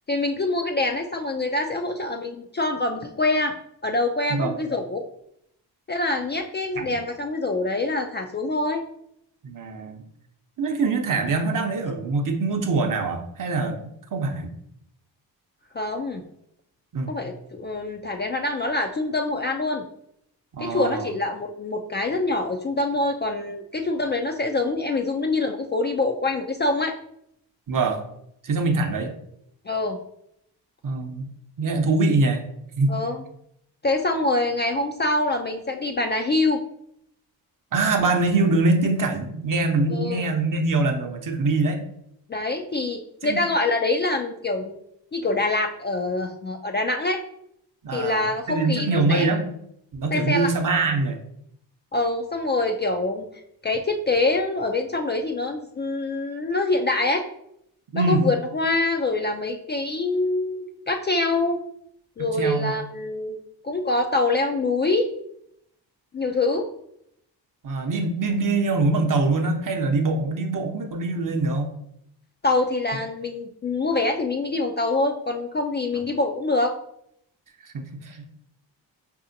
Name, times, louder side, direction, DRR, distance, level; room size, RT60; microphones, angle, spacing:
voice 1, 0.1-3.5 3.8-5.1 5.9-8.8 15.7-16.2 17.1-19.8 20.6-26.9 29.7-30.0 32.9-33.2 33.8-36.6 39.9-40.2 42.3-44.8 45.1-47.2 47.9-49.4 50.1-50.5 51.9-53.3 53.6-57.2 57.9-61.6 62.2-63.4 63.6-65.1 66.1-66.7 72.4-76.7, left 2 dB, 25° left, 3 dB, 0.3 m, -25 dB
voice 2, 9.4-10.0 10.6-13.8 14.1-14.5 16.9-17.2 20.5-21.1 27.7-28.0 28.4-29.1 30.8-31.3 31.6-32.4 32.8-33.0 37.7-41.8 43.2-43.4 47.8-49.5 49.9-51.2 57.9-58.3 62.2-62.7 67.6-71.8 77.6-78.3, right 3 dB, 45° right, 5 dB, 0.7 m, -24 dB
4.8 x 2.7 x 2.6 m, 0.74 s
supercardioid pair, 50°, 46 cm